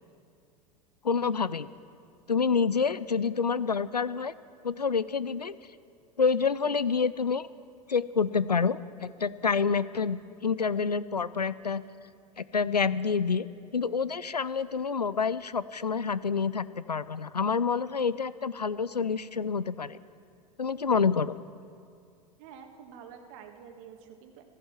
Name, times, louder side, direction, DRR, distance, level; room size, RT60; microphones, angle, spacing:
voice 1, 1.0-1.7 2.3-4.3 4.6-5.6 6.2-7.5 7.9-11.8 12.4-13.5 13.7-20.0 20.6-21.4, left 5 dB, 90° left, 17 dB, 0.5 m, -28 dB
voice 2, 22.4-24.4, right 7 dB, 50° right, 5 dB, 1.8 m, -48 dB
15.0 x 14.0 x 5.8 m, 2.4 s
figure-of-eight pair, 85°, 20 cm